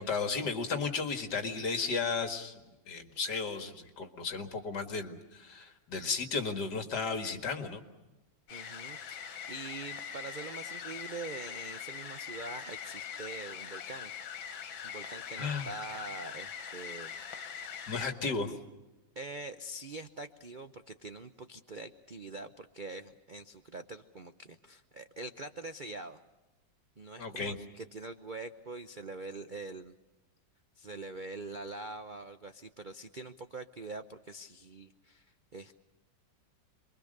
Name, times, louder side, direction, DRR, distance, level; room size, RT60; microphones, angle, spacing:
voice 1, 0.0-2.5 2.9-7.8 15.4-15.7 17.9-18.5 27.2-27.5, left 4 dB, 60° left, 6 dB, 2.4 m, -34 dB
sound 1, 8.5-18.1, left 7 dB, 80° left, 2.0 m, -42 dB
voice 2, 8.5-14.1 14.5-17.1 17.5-17.7 18.2-18.3 19.1-26.2 27.0-29.9 30.8-35.8, right 2 dB, 50° right, 9 dB, 0.5 m, -44 dB
27.5 x 22.5 x 6.7 m, 1.1 s
omnidirectional pair, 2.1 m